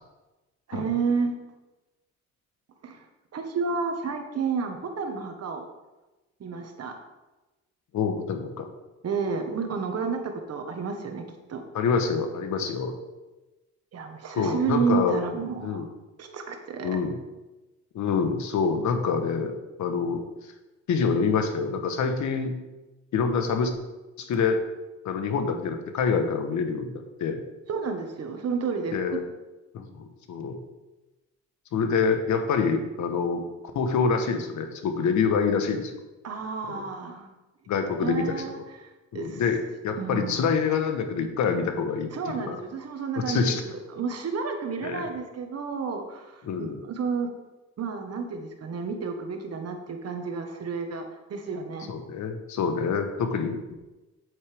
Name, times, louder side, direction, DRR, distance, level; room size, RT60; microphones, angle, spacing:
voice 1, 0.7-1.3 2.8-3.0 3.3-5.6 6.4-7.0 9.0-11.2 11.5-11.6 13.9-15.9 16.2-17.0 27.7-29.2 36.2-37.3 37.9-39.4 40.0-40.4 42.1-47.3 47.8-51.0 51.3-51.9, right 5 dB, 55° right, 4 dB, 1.5 m, -31 dB
voice 2, 7.9-8.7 11.7-13.0 14.3-15.2 15.6-15.9 16.8-17.2 17.9-19.5 19.8-20.2 20.9-22.5 23.1-23.7 24.2-24.6 25.0-26.9 27.2-27.4 28.9-29.2 29.7-30.6 31.7-33.4 33.7-35.9 36.7-36.9 37.7-38.6 39.1-42.6 43.3-43.6 44.8-45.1 46.4-46.8 51.9-53.6, left 5 dB, 70° left, 6 dB, 1.2 m, -26 dB
8.2 x 8.1 x 3.5 m, 1.1 s
cardioid pair, 90°, 30 cm